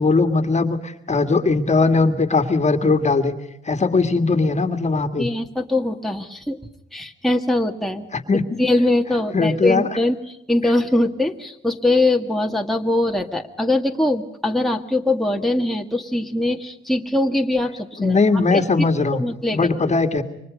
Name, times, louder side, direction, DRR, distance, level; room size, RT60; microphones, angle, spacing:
voice 1, 0.0-3.3 3.7-5.3 8.1-8.4 9.3-9.8 18.0-19.2 19.5-20.2, left 3 dB, 35° left, 7 dB, 2.1 m, -19 dB
voice 2, 5.2-6.6 6.9-8.1 8.6-18.2 18.5-18.6 19.1-19.9, left 2 dB, ahead, 2 dB, 1.9 m, -22 dB
29.0 x 24.5 x 5.3 m, 0.80 s
cardioid pair, 115°, 20 cm